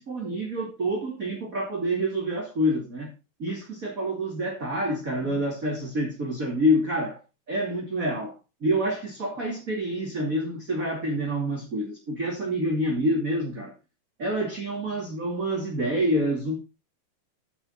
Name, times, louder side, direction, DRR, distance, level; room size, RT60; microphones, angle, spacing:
voice 1, 0.0-3.1 3.4-7.2 7.5-8.4 8.6-13.7 14.2-16.6, equal, 25° right, 2.4 m, -27 dB
13.5 x 5.8 x 4.2 m
omnidirectional pair, 4.6 m